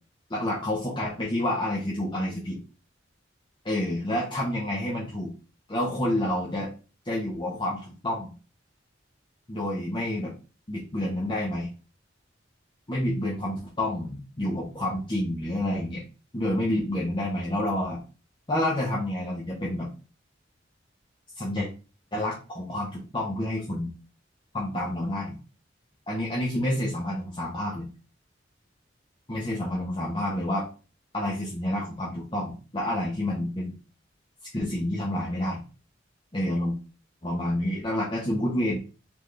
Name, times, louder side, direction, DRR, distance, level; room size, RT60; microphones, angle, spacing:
voice 1, 0.3-2.6 3.6-5.3 5.7-6.7 7.0-8.3 9.5-10.3 10.7-11.7 12.9-16.0 16.3-18.0 18.5-19.9 21.3-21.7 22.1-23.9 24.5-25.4 26.1-27.9 29.3-30.7 31.1-33.7 34.5-35.6 36.3-36.8 37.2-38.8, left 1 dB, 25° left, -4 dB, 0.9 m, -29 dB
3.7 x 3.5 x 3.3 m, 0.34 s
head